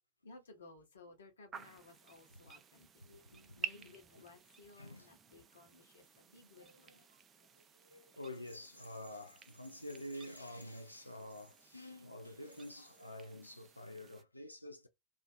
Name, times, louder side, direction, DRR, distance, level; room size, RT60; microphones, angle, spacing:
voice 1, 0.2-2.9 3.5-7.0, left 3 dB, 65° left, 0.9 m, -58 dB
sound 1, 1.5-14.2, right 7 dB, 25° right, 0.4 m, -52 dB
voice 2, 3.0-4.2 4.8-5.1 6.5-14.9, left 1 dB, 85° left, 0.4 m, -49 dB
Rattle, 8.3-12.0 12.4-13.1, equal, 90° right, 0.8 m, -63 dB
2.5 x 2.4 x 2.5 m
figure-of-eight pair, 90°, 0 cm